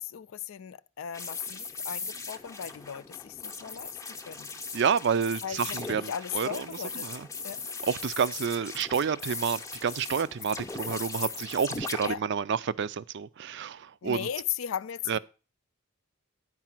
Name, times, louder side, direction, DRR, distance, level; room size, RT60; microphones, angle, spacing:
voice 1, 0.0-3.9 4.3-4.5 5.4-7.1 7.4-7.6 12.0-12.2 14.0-15.2, left 9 dB, 70° left, 0.4 m, -37 dB
sound 1, 1.1-12.1, left 4 dB, 15° left, 0.6 m, -39 dB
voice 2, 4.7-7.3 7.8-14.3 15.1-15.2, right 6 dB, 55° right, 0.4 m, -29 dB
11.0 x 4.8 x 5.9 m
head